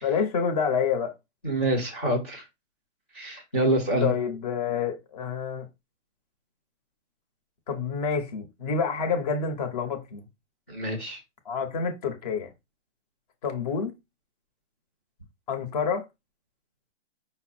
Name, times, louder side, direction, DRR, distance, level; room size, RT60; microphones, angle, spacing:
voice 1, 0.0-1.1 4.0-5.7 7.7-10.2 11.4-12.5 13.4-13.9 15.5-16.1, left 6 dB, 30° left, 1.0 m, -28 dB
voice 2, 1.4-2.4 3.1-4.1 10.7-11.2, right 1 dB, 10° left, 0.4 m, -26 dB
5.5 x 2.1 x 4.3 m
hypercardioid pair, 155°, 37 cm